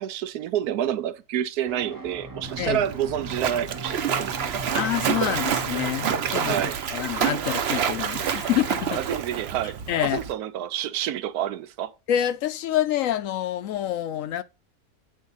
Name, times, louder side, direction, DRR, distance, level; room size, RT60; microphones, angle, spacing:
voice 1, 0.0-4.8 6.4-6.8 9.0-11.9, right 10 dB, 85° right, 1.2 m, -29 dB
sound 1, 1.7-6.7, right 1 dB, 20° right, 0.5 m, -39 dB
Splash splatter, 2.4-10.3, right 8 dB, 55° right, 0.8 m, -28 dB
voice 2, 4.7-9.0 9.9-10.2 12.1-14.4, left 11 dB, 70° left, 0.9 m, -27 dB
8.6 x 3.6 x 5.5 m
omnidirectional pair, 1.6 m